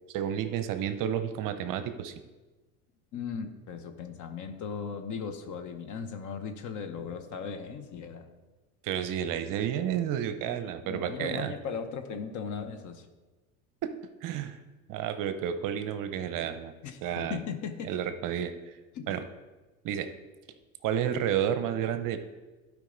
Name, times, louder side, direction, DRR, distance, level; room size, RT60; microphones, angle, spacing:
voice 1, 0.1-2.1 8.8-11.5 13.8-13.9 14.2-14.6 14.9-16.7 17.0-17.4 17.8-18.5 19.1-19.2 19.8-20.1 20.8-22.2, right 9 dB, 50° right, 10 dB, 0.7 m, -31 dB
voice 2, 3.1-8.3 10.5-13.1 16.8-17.9 18.9-19.1, left 6 dB, 45° left, 8 dB, 1.0 m, -38 dB
11.5 x 5.0 x 3.9 m, 1.2 s
supercardioid pair, 105°, 43 cm